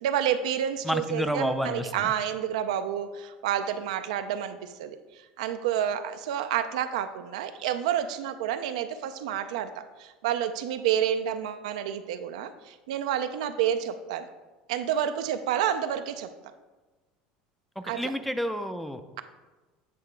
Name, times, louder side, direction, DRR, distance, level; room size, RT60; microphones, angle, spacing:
voice 1, 0.0-5.0 5.4-14.3 14.7-16.3 17.9-18.1, right 10 dB, 85° right, 9 dB, 0.4 m, -29 dB
voice 2, 0.8-2.1 17.8-19.2, equal, ahead, 9 dB, 0.4 m, -30 dB
8.4 x 2.9 x 4.5 m, 1.2 s
supercardioid pair, 110°, 4 cm